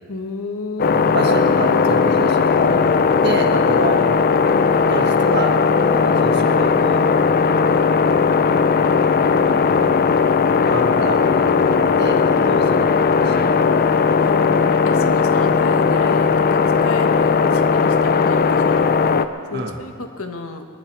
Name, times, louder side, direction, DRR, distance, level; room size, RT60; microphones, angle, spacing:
voice 1, 0.1-1.0 3.8-4.0 12.4-12.6 14.2-18.9 19.5-20.6, left 3 dB, 70° left, 5 dB, 1.3 m, -32 dB
sound 1, 0.8-19.3, left 5 dB, 45° left, 0.5 m, -17 dB
voice 2, 0.9-3.0 3.2-4.4 4.9-5.5 5.9-7.0 7.7-8.3 9.5-10.0 10.7-13.4 19.5-19.8, right 2 dB, 50° right, 3 dB, 1.3 m, -28 dB
23.0 x 10.5 x 4.7 m, 2.3 s
head